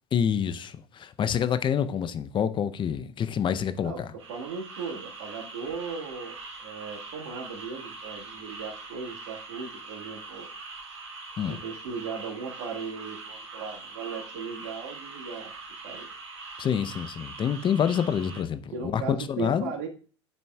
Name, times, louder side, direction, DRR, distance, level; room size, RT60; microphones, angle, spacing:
voice 1, 0.1-4.1 11.4-11.6 16.6-19.7, left 8 dB, 35° left, 0.6 m, -27 dB
voice 2, 3.8-10.5 11.4-15.5 15.8-16.1 18.7-19.9, right 5 dB, 65° right, 1.6 m, -37 dB
sound 1, 4.2-18.4, right 3 dB, 85° right, 1.4 m, -42 dB
9.7 x 4.2 x 2.3 m
hypercardioid pair, 80°, 15 cm